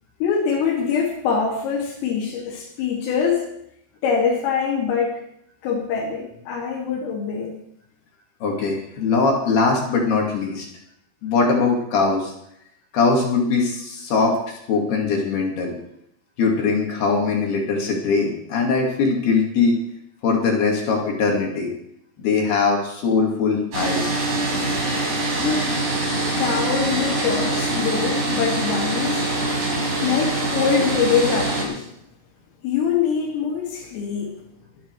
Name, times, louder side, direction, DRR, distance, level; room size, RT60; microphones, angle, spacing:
voice 1, 0.2-3.4 4.0-5.2 5.6-7.6 25.4-25.7 26.4-29.3 30.0-31.9 32.6-34.3, left 6 dB, 75° left, -4 dB, 4.9 m, -23 dB
voice 2, 8.4-10.7 11.2-12.3 12.9-15.7 16.4-19.8 20.2-21.7 22.2-24.1, left 4 dB, 55° left, 0 dB, 4.0 m, -21 dB
sound 1, 23.7-31.6, right 2 dB, 40° right, 6.2 m, -24 dB
23.5 x 10.5 x 4.8 m, 0.76 s
omnidirectional pair, 6.0 m